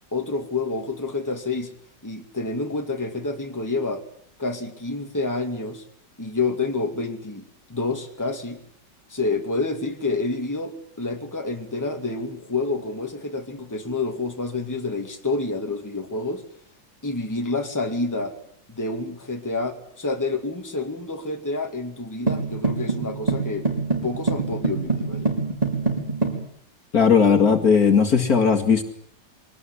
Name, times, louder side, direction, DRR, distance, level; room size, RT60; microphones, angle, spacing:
voice 1, 0.1-1.7 2.0-4.0 4.4-5.8 6.2-8.6 9.1-16.4 17.0-18.4 18.7-23.7 24.0-25.3, left 3 dB, 10° left, 2.4 m, -28 dB
sound 1, 22.3-26.4, right 3 dB, 20° right, 5.0 m, -25 dB
voice 2, 26.9-28.8, left 6 dB, 50° left, 2.5 m, -17 dB
24.0 x 19.0 x 9.9 m
omnidirectional pair, 2.0 m